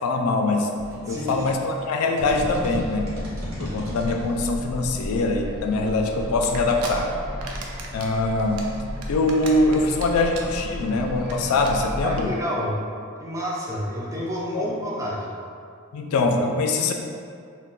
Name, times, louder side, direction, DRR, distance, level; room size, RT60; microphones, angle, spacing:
voice 1, 0.0-0.7 1.1-3.1 3.6-7.1 7.9-8.6 9.1-12.3 14.5-14.7 15.9-16.9, left 2 dB, 90° left, 3 dB, 0.3 m, -23 dB
sound 1, 0.7-7.2, equal, 65° right, 0.8 m, -37 dB
voice 2, 1.0-1.5 12.0-12.8 13.2-15.3, equal, 15° right, -5 dB, 0.3 m, -29 dB
sound 2, 2.2-12.3, equal, 35° left, 0.5 m, -34 dB
sound 3, 6.4-6.9 7.3-8.1 8.4-10.0 10.3-10.6 10.9-11.0 11.2-11.3 11.6-11.7 12.1-12.2, right 5 dB, 85° right, 0.4 m, -36 dB
2.2 x 2.1 x 3.7 m, 2.3 s
head